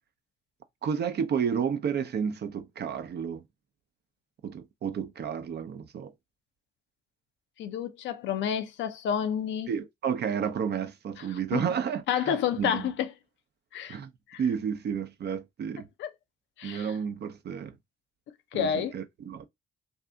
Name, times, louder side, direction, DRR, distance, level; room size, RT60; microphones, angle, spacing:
voice 1, 0.8-3.4 4.4-6.1 9.7-12.9 13.9-14.1 14.4-15.9 16.6-17.7 18.5-19.4, right 7 dB, 60° right, 0.6 m, -31 dB
voice 2, 7.6-9.7 11.3-11.6 12.1-13.1 13.7-14.0 14.3-14.4 16.0-16.1 16.6-16.9 18.5-18.9, left 8 dB, 75° left, 0.5 m, -29 dB
2.6 x 2.6 x 2.2 m
supercardioid pair, 45°, 19 cm